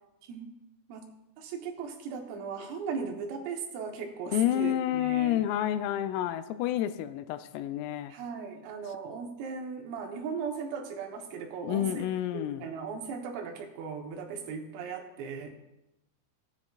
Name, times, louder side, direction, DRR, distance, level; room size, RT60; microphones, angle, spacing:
voice 1, 0.3-0.6 0.9-1.1 1.4-5.4 8.1-15.5, right 5 dB, 85° right, 2 dB, 3.8 m, -38 dB
voice 2, 4.3-8.1 11.6-12.7, left 12 dB, 85° left, 10 dB, 3.2 m, -29 dB
17.0 x 9.8 x 2.5 m, 0.93 s
omnidirectional pair, 5.8 m